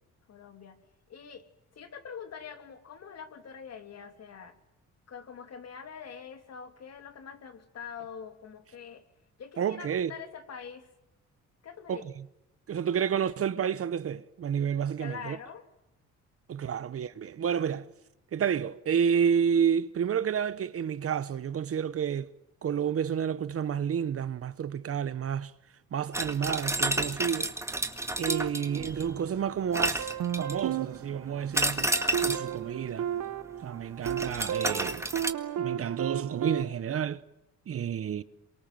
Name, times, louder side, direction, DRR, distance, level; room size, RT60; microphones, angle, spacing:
voice 1, 0.3-0.8 1.1-1.5 1.7-4.5 5.1-9.0 9.4-10.9 11.6-12.1 15.0-15.6, left 7 dB, 55° left, 3.0 m, -44 dB
voice 2, 9.6-10.1 11.9-12.0 12.7-15.4 16.5-17.9 18.3-22.3 22.6-25.5 25.9-27.5 28.2-30.1 30.4-31.9 32.2-33.1 33.6-35.1 35.6-37.2 37.7-38.2, right 8 dB, 50° right, 1.0 m, -30 dB
sound 1, 26.1-29.1 29.7-30.7 31.5-32.5 34.0-35.3, right 1 dB, 10° right, 1.8 m, -30 dB
sound 2, 28.3-29.5 30.0-36.6, right 10 dB, 70° right, 1.2 m, -34 dB
27.5 x 24.0 x 7.6 m
cardioid pair, 90°, 30 cm